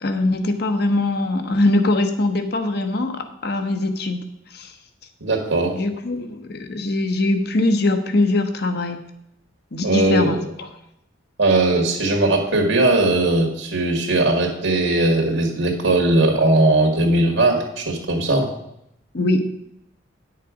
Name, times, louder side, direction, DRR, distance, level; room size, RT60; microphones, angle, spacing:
voice 1, 0.0-4.2 4.5-4.7 5.7-9.0 9.7-10.7 19.1-19.7, left 2 dB, 55° left, 6 dB, 1.0 m, -22 dB
voice 2, 5.2-5.8 9.8-10.4 11.4-18.5, right 2 dB, 85° right, 0 dB, 1.8 m, -19 dB
10.0 x 6.6 x 5.0 m, 0.77 s
head